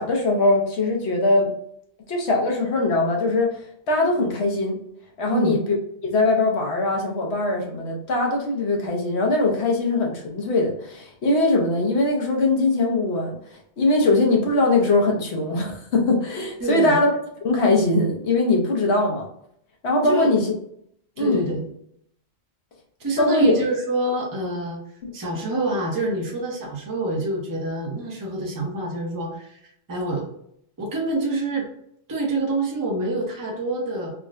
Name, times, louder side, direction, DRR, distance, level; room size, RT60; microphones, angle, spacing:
voice 1, 0.0-1.5 2.1-4.8 5.2-5.8 6.0-17.1 17.4-19.3 19.8-20.5 21.2-21.4 23.2-23.6 25.0-25.1, left 2 dB, 70° left, 0 dB, 1.0 m, -21 dB
voice 2, 16.6-17.0 20.0-20.3 21.2-21.7 23.0-24.8 25.1-30.3 30.8-31.7 32.1-34.1, right 2 dB, 20° right, -1 dB, 0.6 m, -26 dB
3.6 x 2.1 x 2.4 m, 0.71 s
omnidirectional pair, 1.2 m